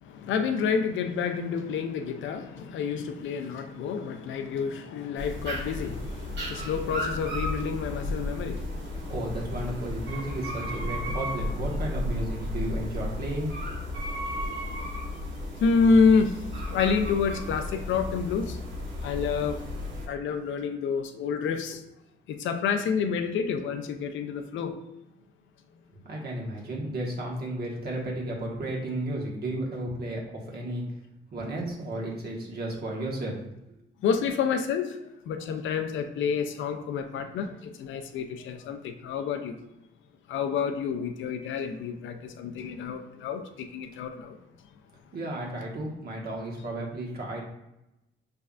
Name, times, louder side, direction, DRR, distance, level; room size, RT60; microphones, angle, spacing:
voice 1, 0.0-9.1 14.4-14.7 15.6-16.4 16.7-18.6 19.0-19.6 20.1-21.8 22.3-24.8 34.0-35.0 35.3-39.6 40.3-44.3, left 5 dB, 75° left, 7 dB, 0.5 m, -28 dB
sound 1, 5.2-20.1, left 1 dB, 70° right, 1.1 m, -34 dB
voice 2, 9.1-14.0 26.0-30.8 31.3-33.4 33.7-33.8 45.1-47.4, right 1 dB, 50° right, -2 dB, 1.3 m, -33 dB
5.3 x 3.3 x 2.4 m, 0.89 s
cardioid pair, 90°, 20 cm